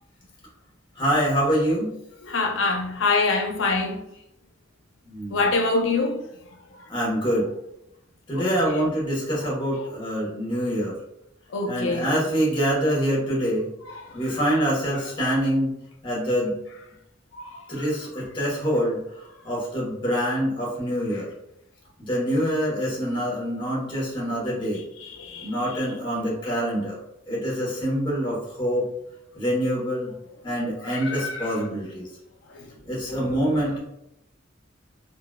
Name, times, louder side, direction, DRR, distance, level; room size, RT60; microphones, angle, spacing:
voice 1, 1.0-1.9 5.1-5.5 6.9-7.5 8.3-11.0 11.7-13.7 14.1-15.7 16.0-16.6 17.7-21.3 22.0-24.8 25.4-27.0 27.3-28.9 29.3-30.1 30.4-32.1 32.9-33.8, equal, 25° left, 1.0 m, -25 dB
voice 2, 2.2-4.0 5.3-6.3 6.7-6.9 8.3-8.9 9.8-9.9 11.5-12.3 13.9-14.4 14.9-15.0 17.3-17.9 21.1-21.2 25.0-25.9 30.5-31.6 32.5-32.7, left 3 dB, 70° left, 0.5 m, -27 dB
3.7 x 2.2 x 2.2 m
head